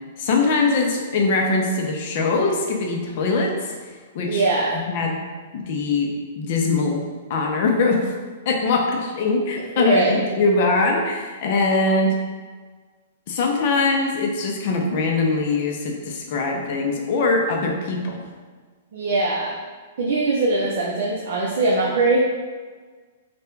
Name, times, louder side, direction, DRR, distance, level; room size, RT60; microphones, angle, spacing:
voice 1, 0.2-3.5 4.1-4.5 4.9-5.2 5.5-7.0 7.3-8.1 8.5-12.1 13.3-18.2, left 3 dB, 45° left, 1 dB, 0.7 m, -22 dB
voice 2, 4.3-4.8 9.7-10.2 18.9-19.6 20.0-22.2, right 3 dB, 55° right, -4 dB, 0.6 m, -21 dB
3.4 x 2.5 x 4.5 m, 1.5 s
hypercardioid pair, 165°, 0 cm